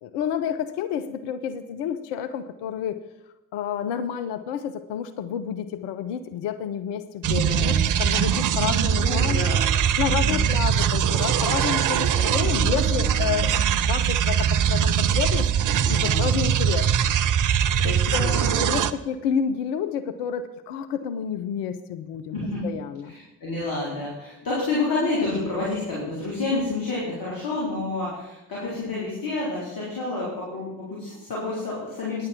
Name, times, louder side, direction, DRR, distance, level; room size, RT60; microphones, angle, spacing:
voice 1, 0.0-3.0 3.5-9.4 10.0-15.5 15.9-16.9 17.8-22.4 22.6-23.1, left 8 dB, 65° left, 11 dB, 0.7 m, -29 dB
sound 1, 7.2-18.9, right 8 dB, 45° right, 0.7 m, -22 dB
voice 2, 7.3-7.8 9.0-9.7 10.0-10.5 12.2-13.2 15.8-16.3 17.8-18.3 22.3-22.6 23.0-32.2, left 2 dB, 50° left, -6 dB, 4.0 m, -29 dB
9.8 x 8.6 x 6.0 m, 0.94 s
figure-of-eight pair, 40°, 44 cm